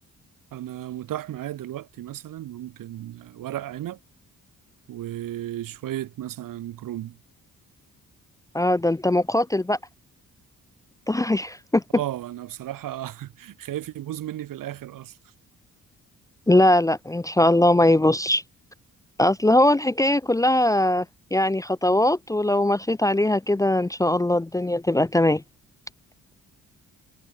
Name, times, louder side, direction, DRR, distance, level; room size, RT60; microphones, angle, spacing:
voice 1, 0.5-4.0 4.9-7.2 11.9-15.2, right 13 dB, 90° right, 6.0 m, -34 dB
voice 2, 8.5-9.8 11.1-11.8 16.5-18.4 19.2-21.1 21.3-25.4, left 1 dB, 10° left, 0.6 m, -20 dB
cardioid pair, 110°, 32 cm